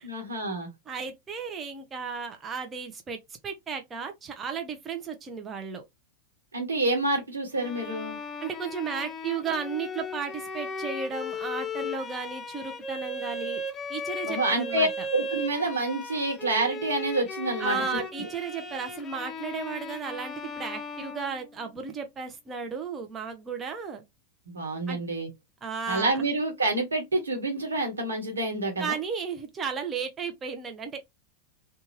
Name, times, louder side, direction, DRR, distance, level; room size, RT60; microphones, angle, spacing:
voice 1, 0.0-0.7 6.5-8.2 14.2-18.3 24.5-25.3 25.9-28.9, right 2 dB, 80° right, 1.1 m, -28 dB
voice 2, 0.9-3.2 3.4-5.8 8.4-13.6 13.9-15.1 17.6-24.0 24.9-25.0 25.6-26.3 28.8-31.0, right 5 dB, 25° right, 0.6 m, -34 dB
Bowed string instrument, 7.6-21.8, left 2 dB, 20° left, 0.6 m, -37 dB
2.6 x 2.3 x 2.9 m
figure-of-eight pair, 90°, 0 cm